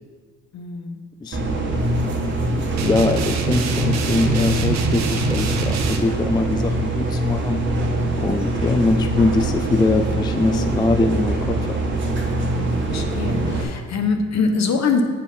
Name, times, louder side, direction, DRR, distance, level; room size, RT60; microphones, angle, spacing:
voice 1, 0.5-1.0 12.4-15.0, left 4 dB, 60° left, 5 dB, 1.1 m, -24 dB
sound 1, 1.3-13.6, right 1 dB, 40° right, 1.4 m, -23 dB
voice 2, 2.5-7.6 8.2-11.8, left 2 dB, 15° left, 8 dB, 0.4 m, -22 dB
sound 2, 2.8-6.0, right 6 dB, 65° right, 0.9 m, -26 dB
8.9 x 4.5 x 5.5 m, 1.5 s
cardioid pair, 90°, 30 cm